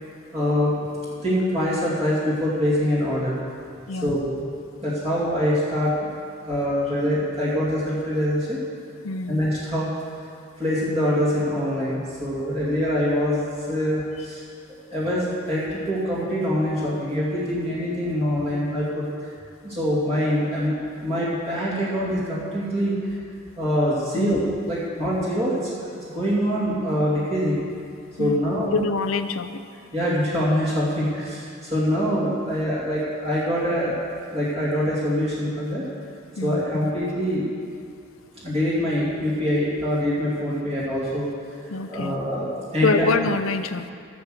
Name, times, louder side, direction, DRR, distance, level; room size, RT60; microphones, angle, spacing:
voice 1, 0.3-0.8 1.2-3.4 4.0-4.5 4.8-6.1 6.5-8.6 9.3-9.9 10.6-14.4 14.9-19.3 19.6-23.1 23.6-27.6 28.2-28.8 29.9-34.0 34.3-35.8 36.4-37.5 38.4-41.3 41.6-43.1, equal, 30° right, -8 dB, 2.4 m, -24 dB
voice 2, 9.0-9.4 24.1-24.3 28.2-28.4 28.7-29.6 36.4-36.9 41.7-42.2 42.8-43.9, left 4 dB, 85° left, 10 dB, 0.6 m, -26 dB
13.5 x 6.4 x 7.7 m, 2.4 s
head